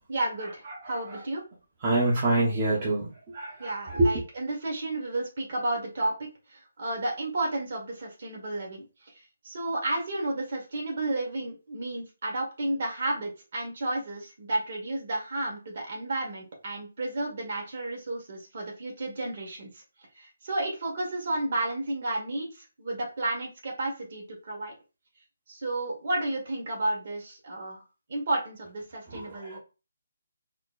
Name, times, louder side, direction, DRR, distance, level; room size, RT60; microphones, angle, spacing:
voice 1, 0.1-1.4 3.6-6.1 6.5-8.8 9.4-19.8 20.2-24.7 25.5-27.8 28.1-29.6, right 2 dB, 40° right, -1 dB, 1.8 m, -32 dB
voice 2, 1.8-4.1 29.1-29.6, right 2 dB, 20° right, -6 dB, 1.0 m, -26 dB
4.3 x 2.3 x 4.1 m, 0.31 s
hypercardioid pair, 175°, 0 cm